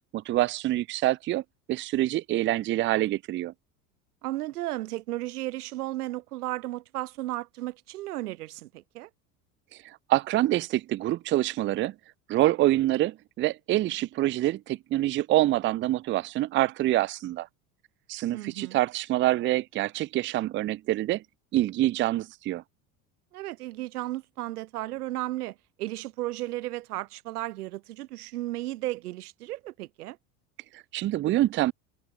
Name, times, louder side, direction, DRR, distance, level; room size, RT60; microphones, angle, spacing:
voice 1, 0.1-1.4 1.7-3.5 10.1-11.9 12.3-17.5 18.1-21.2 21.5-22.6 30.7-31.7, right 15 dB, 30° right, 0.4 m, -26 dB
voice 2, 4.2-9.1 18.3-18.8 23.3-30.2, right 17 dB, 85° right, 0.6 m, -34 dB
hypercardioid pair, 85°, 45 cm